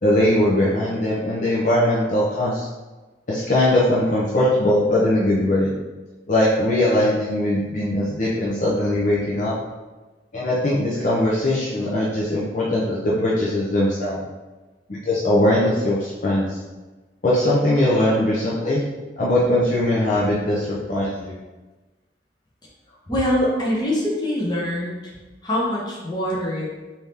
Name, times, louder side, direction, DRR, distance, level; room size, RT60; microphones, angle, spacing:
voice 1, 0.0-2.7 3.3-5.7 6.3-9.5 10.3-14.2 14.9-16.6 17.2-18.8 19.2-21.4, left 1 dB, 45° left, -7 dB, 0.6 m, -20 dB
voice 2, 23.1-25.1 25.4-26.7, left 1 dB, 25° left, -6 dB, 1.0 m, -24 dB
3.6 x 2.8 x 3.3 m, 1.2 s
head